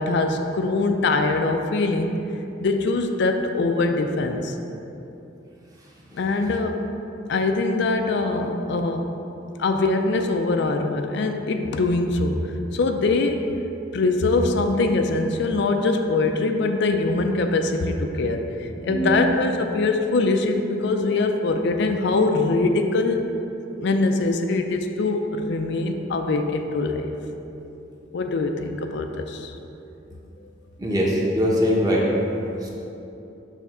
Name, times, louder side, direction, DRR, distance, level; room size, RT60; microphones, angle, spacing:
voice 1, 0.0-2.2 2.6-4.6 6.1-6.8 7.3-9.1 9.6-12.5 12.7-13.5 13.9-23.2 23.8-27.1 28.1-29.5, left 3 dB, 65° left, 5 dB, 0.4 m, -23 dB
voice 2, 18.9-19.3 30.8-32.1 32.6-32.7, equal, 20° right, -4 dB, 1.0 m, -22 dB
6.9 x 3.3 x 6.0 m, 2.9 s
head